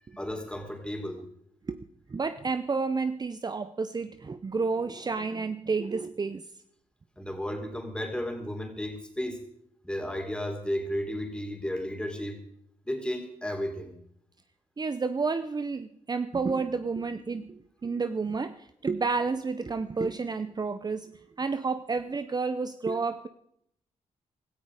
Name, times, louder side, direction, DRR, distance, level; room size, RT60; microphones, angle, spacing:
voice 1, 0.1-1.2 7.2-9.4 9.8-12.4 12.9-13.9, equal, 5° left, 4 dB, 3.8 m, -33 dB
voice 2, 2.1-6.4 14.8-21.1 21.4-23.3, right 4 dB, 30° right, 11 dB, 0.8 m, -30 dB
17.0 x 14.0 x 5.0 m, 0.72 s
cardioid pair, 85°, 13 cm